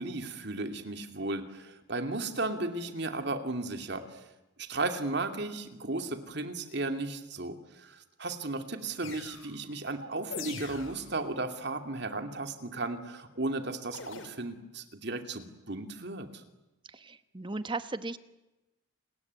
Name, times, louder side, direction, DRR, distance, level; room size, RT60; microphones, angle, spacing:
voice 1, 0.0-4.3 4.6-16.4, right 2 dB, 55° right, 6 dB, 2.6 m, -35 dB
sound 1, 9.0-9.6 10.3-11.2 13.9-14.3, left 5 dB, 70° left, 4.0 m, -42 dB
voice 2, 16.9-18.2, right 3 dB, 25° right, 11 dB, 1.0 m, -36 dB
29.5 x 21.0 x 9.5 m, 1.0 s
head